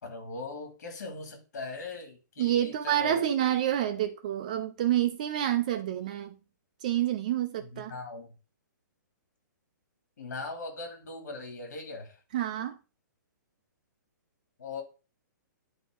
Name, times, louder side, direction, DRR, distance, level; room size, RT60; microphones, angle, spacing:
voice 1, 0.0-3.2 7.6-8.3 10.2-12.2 14.6-14.8, left 3 dB, 55° left, 2.7 m, -40 dB
voice 2, 2.4-6.4 6.8-7.9 12.3-12.8, right 11 dB, 25° right, 0.4 m, -28 dB
10.0 x 4.1 x 3.8 m
hypercardioid pair, 175°, 10 cm